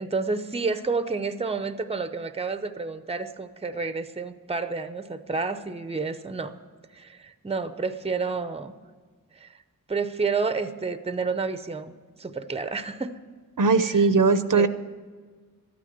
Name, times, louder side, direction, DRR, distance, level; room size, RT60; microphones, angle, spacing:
voice 1, 0.0-6.5 6.9-8.7 9.4-9.5 9.9-11.9 12.2-13.1 13.8-14.1 14.5-14.7, right 4 dB, 15° right, 11 dB, 0.7 m, -30 dB
voice 2, 13.6-14.7, right 4 dB, 65° right, 12 dB, 0.7 m, -19 dB
13.0 x 9.3 x 8.6 m, 1.5 s
wide cardioid pair, 85°, 35 cm